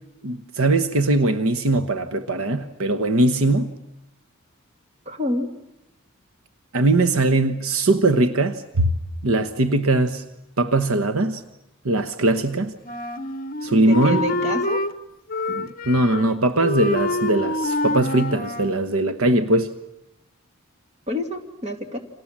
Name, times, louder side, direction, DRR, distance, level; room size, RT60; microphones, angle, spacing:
voice 1, 0.2-3.7 6.7-8.9 9.2-10.2 10.6-11.4 11.8-12.7 13.6-14.2 15.5-19.7, right 2 dB, 75° right, 1.2 m, -20 dB
voice 2, 5.1-5.5 13.7-14.8 21.1-22.0, left 1 dB, 30° right, 2.6 m, -27 dB
Wind instrument woodwind instrument, 12.8-14.9 15.3-16.3 16.6-18.8, left 2 dB, 40° left, 1.0 m, -26 dB
29.5 x 26.0 x 7.4 m
head